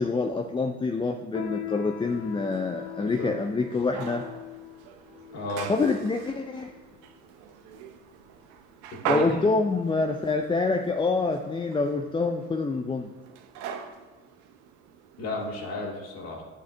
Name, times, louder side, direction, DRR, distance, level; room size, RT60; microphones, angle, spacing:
voice 1, 0.0-4.2 5.7-6.7 9.0-13.1, left 3 dB, 15° left, 4 dB, 0.5 m, -26 dB
Piano, 1.3-11.3, left 10 dB, 80° left, 1.0 m, -42 dB
sound 1, 2.0-15.7, right 7 dB, 65° right, 0.9 m, -40 dB
voice 2, 3.0-3.3 5.3-5.7 8.9-9.4 15.2-16.4, left 2 dB, 55° left, -3 dB, 2.5 m, -34 dB
8.6 x 7.5 x 3.5 m, 1.3 s
hypercardioid pair, 60°, 32 cm